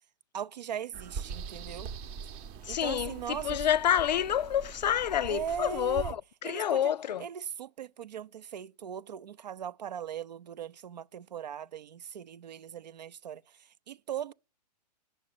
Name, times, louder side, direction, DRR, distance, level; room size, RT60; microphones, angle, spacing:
voice 1, 0.3-1.9 2.7-3.6 5.3-6.1 6.4-6.9 7.2-14.3, right 8 dB, 80° right, 0.6 m, -39 dB
sound 1, 0.9-6.1, right 6 dB, 30° right, 0.8 m, -42 dB
voice 2, 2.6-7.3, left 10 dB, 85° left, 0.4 m, -28 dB
9.8 x 6.6 x 7.8 m
hypercardioid pair, 135°, 21 cm